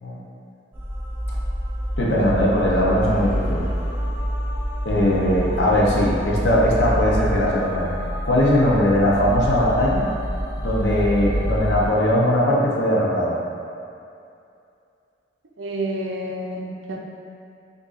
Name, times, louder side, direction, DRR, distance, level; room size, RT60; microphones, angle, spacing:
sound 1, 0.7-11.9, equal, 10° right, 0.5 m, -27 dB
voice 1, 2.0-3.6 4.8-7.9 8.2-10.1 10.6-13.4, left 1 dB, 65° left, -4 dB, 0.7 m, -20 dB
voice 2, 4.9-5.2 15.6-17.0, right 1 dB, 85° right, 0 dB, 0.5 m, -29 dB
6.2 x 2.6 x 2.5 m, 2.6 s
head